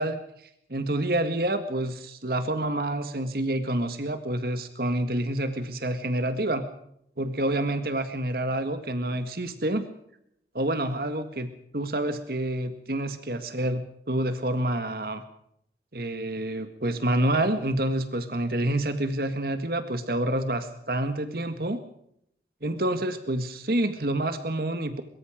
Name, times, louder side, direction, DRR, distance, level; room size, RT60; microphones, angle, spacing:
voice 1, 0.0-6.7 7.2-9.8 10.5-15.2 15.9-21.8 22.6-25.0, right 1 dB, 55° right, 9 dB, 1.8 m, -28 dB
23.0 x 22.5 x 5.1 m, 0.73 s
head